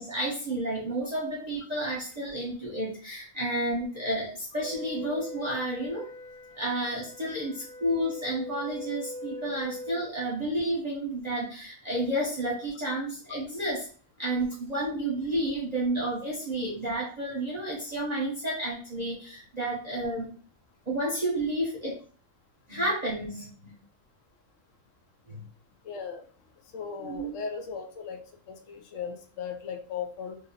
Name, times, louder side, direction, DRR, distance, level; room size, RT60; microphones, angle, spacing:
voice 1, 0.0-6.1 6.6-13.9 14.2-20.3 20.9-22.0 22.7-23.7 25.3-25.4 27.0-27.4, right 1 dB, 35° right, -4 dB, 0.9 m, -31 dB
Wind instrument woodwind instrument, 4.6-10.1, left 1 dB, 10° left, 0.8 m, -41 dB
voice 2, 25.8-26.2 26.7-28.2 28.5-30.4, left 6 dB, 75° left, 5 dB, 1.0 m, -37 dB
2.8 x 2.7 x 4.0 m, 0.41 s
omnidirectional pair, 1.4 m